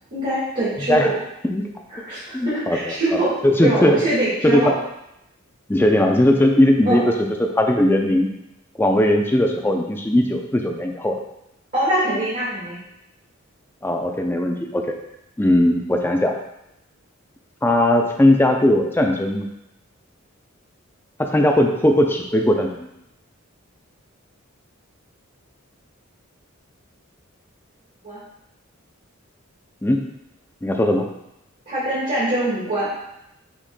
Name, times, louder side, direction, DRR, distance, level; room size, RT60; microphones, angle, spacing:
voice 1, 0.1-1.0 1.9-3.3 3.6-4.7 6.9-7.0 11.7-12.8 28.0-28.2 31.7-32.9, right 1 dB, 40° right, -12 dB, 1.7 m, -23 dB
voice 2, 2.3-2.9 3.4-4.0 4.4-4.7 5.7-8.3 8.8-11.2 13.8-15.0 15.4-16.4 17.6-19.5 21.2-22.9 29.8-30.0 30.6-31.1, left 1 dB, 10° left, 2 dB, 0.4 m, -18 dB
5.9 x 4.0 x 2.2 m, 0.85 s
head